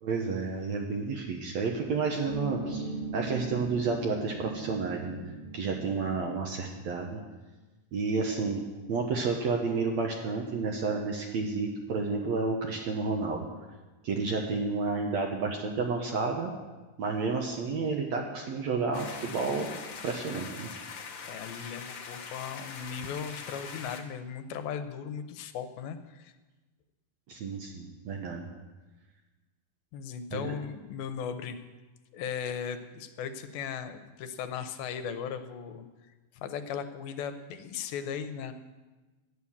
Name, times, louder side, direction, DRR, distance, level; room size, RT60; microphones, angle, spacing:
voice 1, 0.0-5.2 5.5-7.2 7.9-8.6 8.9-13.5 14.0-16.5 17.0-19.7 20.0-20.7 27.3-28.5 30.3-30.5, right 4 dB, 65° right, 1 dB, 1.8 m, -31 dB
sound 1, 2.3-6.3, right 3 dB, 85° right, 5.5 m, -39 dB
sound 2, 18.9-24.0, left 5 dB, 60° left, 1.5 m, -42 dB
voice 2, 21.3-26.3 29.9-31.6 32.1-35.9 36.3-38.5, left 7 dB, 85° left, 9 dB, 2.6 m, -37 dB
11.0 x 9.5 x 7.2 m, 1.2 s
omnidirectional pair, 4.2 m